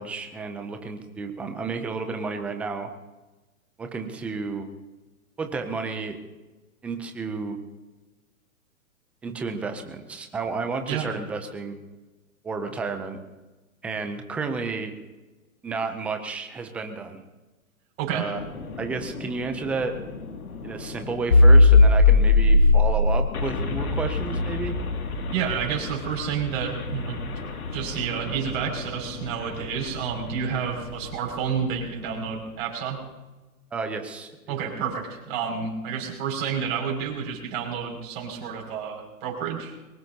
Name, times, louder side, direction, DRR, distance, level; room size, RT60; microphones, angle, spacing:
voice 1, 0.0-2.9 3.8-4.7 5.4-6.2 6.8-7.6 9.2-11.8 12.4-13.2 13.8-14.9 15.6-17.2 18.1-18.4 18.8-20.0 20.6-24.7 33.7-34.3, right 4 dB, 5° right, 6 dB, 0.4 m, -31 dB
sound 1, 18.3-31.1, left 2 dB, 85° left, 2.4 m, -22 dB
voice 2, 25.3-27.4 27.7-33.0 34.5-39.7, right 7 dB, 40° right, 0 dB, 5.9 m, -30 dB
23.0 x 20.0 x 2.8 m, 1.2 s
hypercardioid pair, 135°, 43 cm